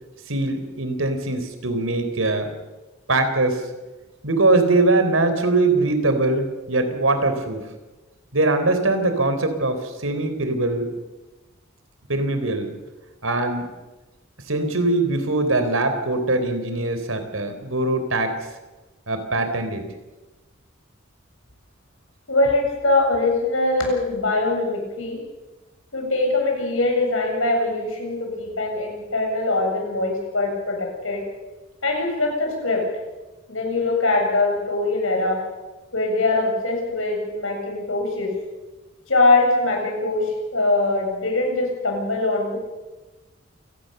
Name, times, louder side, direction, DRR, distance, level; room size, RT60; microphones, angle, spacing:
voice 1, 0.3-2.5 3.1-3.6 4.2-7.6 8.3-10.9 12.1-12.7 13.2-13.7 14.5-18.4 19.1-19.9, right 2 dB, 85° right, 8 dB, 3.9 m, -22 dB
voice 2, 22.3-25.2 25.9-31.2 31.8-32.9 33.5-35.4 35.9-38.3 39.1-42.6, left 2 dB, 85° left, 2 dB, 7.7 m, -22 dB
28.0 x 18.5 x 6.8 m, 1.1 s
head